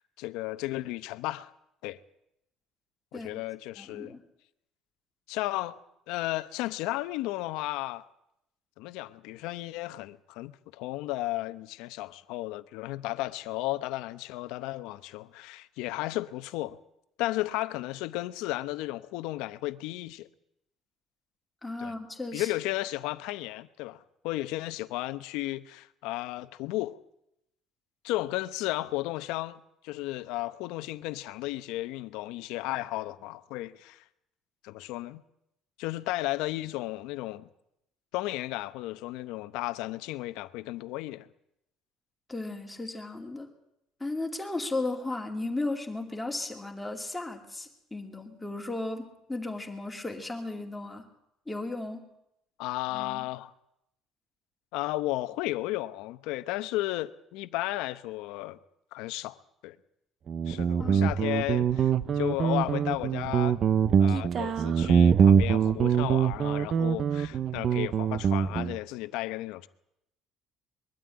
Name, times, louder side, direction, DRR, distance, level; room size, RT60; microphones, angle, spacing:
voice 1, 0.0-1.5 1.8-2.0 3.1-4.2 5.3-5.8 6.1-8.1 8.8-16.8 17.2-20.3 21.8-21.9 22.3-27.0 28.0-34.0 34.6-35.2 35.8-37.5 38.1-41.3 52.6-53.5 54.7-58.6 58.9-59.4 59.6-59.8 60.5-63.6 64.0-69.7, left 17 dB, 90° left, 0.9 m, -34 dB
voice 2, 3.8-4.2 21.6-22.5 42.3-43.5 44.0-51.0 51.5-52.1 52.9-53.3 60.8-61.0, left 2 dB, 5° left, 2.6 m, -35 dB
Guitar, 60.3-68.8, right 7 dB, 40° right, 0.7 m, -24 dB
22.0 x 13.0 x 9.7 m
cardioid pair, 150°, 0 cm